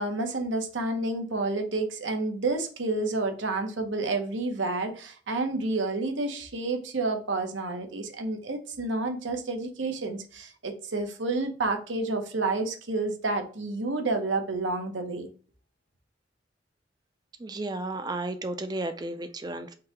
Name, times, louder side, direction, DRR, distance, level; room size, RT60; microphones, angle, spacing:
voice 1, 0.0-15.3, right 2 dB, 85° right, 0.9 m, -30 dB
voice 2, 17.4-19.7, right 2 dB, 20° right, 0.4 m, -33 dB
3.8 x 2.8 x 4.3 m
head